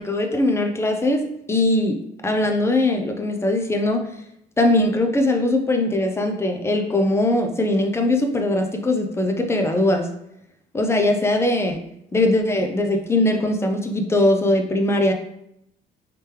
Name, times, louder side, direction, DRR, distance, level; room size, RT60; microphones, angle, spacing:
voice 1, 0.0-2.0 2.2-4.2 4.6-10.1 10.7-11.8 12.1-15.1, left 1 dB, 15° left, 4 dB, 0.5 m, -21 dB
3.3 x 3.0 x 3.3 m, 0.77 s
cardioid pair, 110°, 17 cm